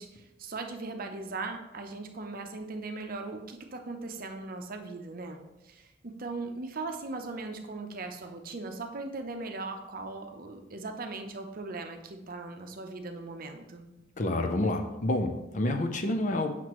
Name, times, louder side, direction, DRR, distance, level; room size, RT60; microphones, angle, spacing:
voice 1, 0.0-13.9, right 3 dB, 50° right, 5 dB, 0.7 m, -39 dB
voice 2, 14.2-16.5, left 1 dB, 40° left, 6 dB, 0.6 m, -28 dB
7.7 x 5.8 x 3.1 m, 1.0 s
head